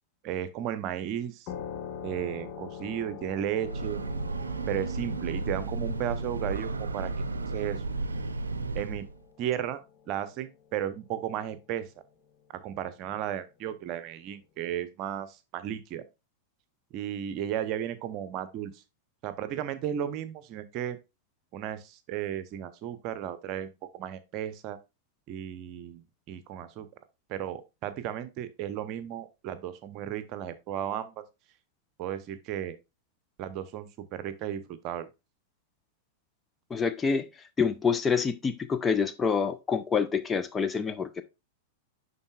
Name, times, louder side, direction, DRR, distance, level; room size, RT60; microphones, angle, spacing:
voice 1, 0.2-1.5 2.0-4.0 4.7-7.8 8.7-9.1 9.4-11.9 12.5-16.0 16.9-18.8 19.2-21.0 21.5-24.8 25.3-26.9 27.3-31.2 32.0-32.8 33.4-35.1, right 10 dB, 40° right, 0.8 m, -34 dB
sound 1, 1.5-10.7, left 7 dB, 45° left, 1.1 m, -45 dB
Breathing / Train, 3.4-9.2, right 3 dB, 80° right, 0.6 m, -33 dB
voice 2, 36.7-37.3 37.6-41.2, left 6 dB, 15° left, 0.5 m, -27 dB
10.5 x 4.0 x 2.4 m
figure-of-eight pair, 95°, 0 cm